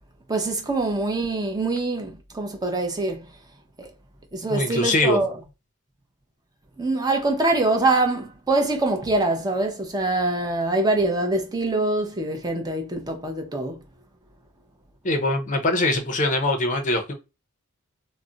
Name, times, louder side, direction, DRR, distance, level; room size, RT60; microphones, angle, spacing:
voice 1, 0.3-3.3 3.8-3.9 4.3-5.4 6.8-13.8, right 2 dB, 20° right, 0.6 m, -24 dB
voice 2, 4.5-5.2 15.0-17.1, left 2 dB, 35° left, 0.5 m, -22 dB
2.4 x 2.1 x 3.8 m
head